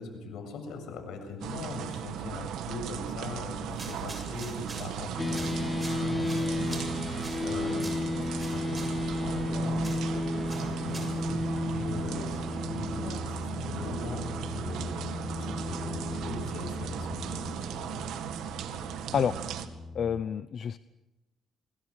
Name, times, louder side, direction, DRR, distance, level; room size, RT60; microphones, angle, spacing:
voice 1, 0.0-14.3 14.5-17.5, left 4 dB, 85° left, 6 dB, 7.2 m, -41 dB
sound 1, 1.4-19.7, right 9 dB, 85° right, 2.1 m, -37 dB
sound 2, 3.6-11.3, right 3 dB, 25° right, 7.5 m, -46 dB
sound 3, 5.2-20.2, left 2 dB, 20° left, 1.6 m, -34 dB
voice 2, 19.9-20.8, left 8 dB, 55° left, 13 dB, 0.8 m, -28 dB
28.5 x 22.5 x 6.5 m, 0.99 s
cardioid pair, 105°, 0 cm